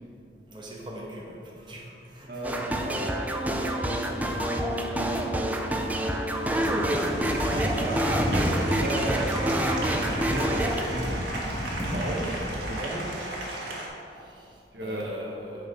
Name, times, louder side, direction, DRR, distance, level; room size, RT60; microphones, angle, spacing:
voice 1, 0.5-2.4 12.0-12.1 14.1-15.7, equal, 25° right, -4 dB, 1.1 m, -43 dB
voice 2, 2.3-5.2 7.4-11.2 11.8-13.1 14.7-15.3, right 1 dB, 60° right, -2 dB, 1.0 m, -35 dB
sound 1, 2.4-10.8, equal, 10° right, 0.4 m, -27 dB
Applause, 5.7-13.9, right 1 dB, 80° right, 1.4 m, -36 dB
Computer keyboard, 6.5-12.6, equal, 15° left, 1.2 m, -33 dB
8.7 x 4.1 x 5.3 m, 2.7 s
head